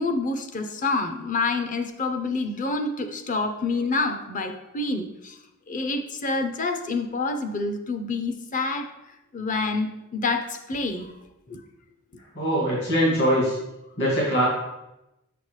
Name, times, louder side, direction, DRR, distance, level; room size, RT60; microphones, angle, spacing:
voice 1, 0.0-5.4 5.7-8.9 9.3-11.1 11.5-11.6, left 3 dB, 35° left, 7 dB, 0.6 m, -27 dB
voice 2, 12.4-13.6 14.0-14.5, equal, 50° left, -6 dB, 2.2 m, -22 dB
7.0 x 6.7 x 3.2 m, 0.93 s
head